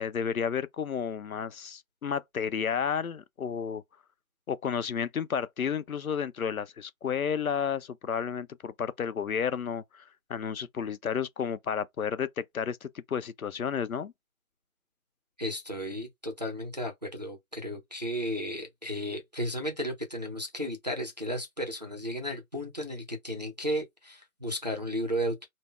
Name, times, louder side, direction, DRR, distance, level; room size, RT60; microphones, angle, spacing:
voice 1, 0.0-3.8 4.5-10.0 10.3-14.1, left 7 dB, 75° left, 0.6 m, -32 dB
voice 2, 15.4-25.5, equal, 30° right, 0.6 m, -34 dB
3.4 x 2.1 x 2.3 m
figure-of-eight pair, 155°, 43 cm